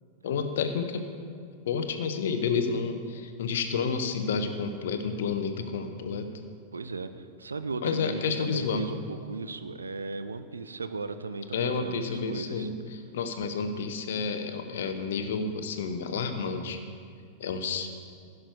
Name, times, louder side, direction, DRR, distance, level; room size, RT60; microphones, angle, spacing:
voice 1, 0.2-1.0 1.7-6.3 7.8-8.9 11.5-12.8 13.1-16.8 17.4-17.9, left 5 dB, 60° left, 8 dB, 0.9 m, -30 dB
voice 2, 6.7-12.7, right 3 dB, 75° right, 11 dB, 0.5 m, -36 dB
15.5 x 6.5 x 4.7 m, 2.2 s
figure-of-eight pair, 90°, 0 cm